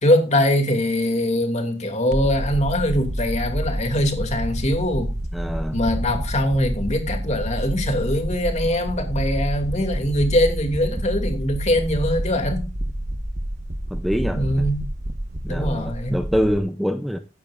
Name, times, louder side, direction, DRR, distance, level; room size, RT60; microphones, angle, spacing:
voice 1, 0.0-5.1 5.7-12.7 14.3-14.9 15.5-16.2, left 1 dB, 40° left, 2.6 m, -22 dB
sound 1, 2.1-16.6, right 1 dB, 40° right, 1.2 m, -28 dB
voice 2, 5.3-5.8 13.9-14.7 15.4-17.2, equal, ahead, 0.6 m, -25 dB
16.5 x 10.0 x 2.5 m
head